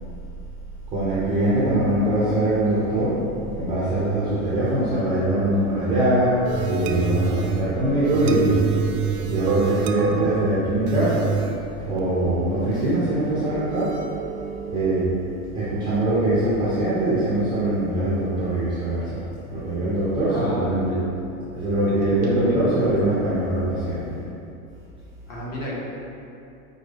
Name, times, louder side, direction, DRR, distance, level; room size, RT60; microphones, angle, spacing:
voice 1, 0.9-3.2 3.6-8.6 9.2-11.3 11.8-14.0 14.7-15.1 15.5-19.2 19.5-21.0 21.5-24.1, right 1 dB, 10° right, -11 dB, 0.4 m, -22 dB
sound 1, 6.4-15.1, right 6 dB, 80° right, 0.5 m, -28 dB
voice 2, 20.3-21.0 21.9-22.7 25.3-25.7, equal, 35° left, -6 dB, 0.9 m, -33 dB
4.8 x 2.2 x 3.2 m, 2.7 s
supercardioid pair, 140°, 44 cm